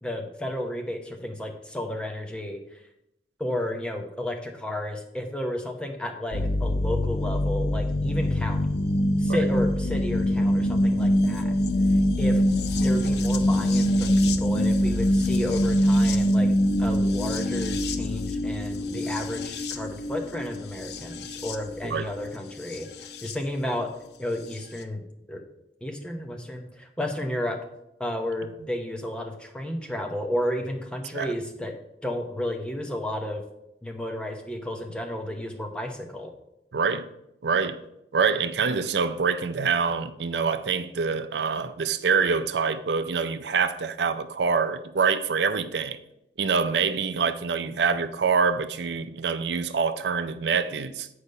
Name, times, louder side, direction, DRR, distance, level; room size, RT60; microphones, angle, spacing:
voice 1, 0.0-2.8 3.4-8.7 9.2-11.5 12.2-12.4 12.8-16.5 16.8-22.9 23.2-23.9 24.2-25.0 25.3-25.4 25.8-27.6 28.0-31.7 32.0-33.4 33.8-36.3, left 1 dB, 5° left, 0.9 m, -32 dB
sound 1, 6.3-23.4 24.5-24.6, equal, 75° left, 0.6 m, -24 dB
voice 2, 36.7-37.0 37.4-37.8 38.1-46.0 46.4-51.1, right 5 dB, 80° right, 0.5 m, -25 dB
8.6 x 5.0 x 5.4 m
head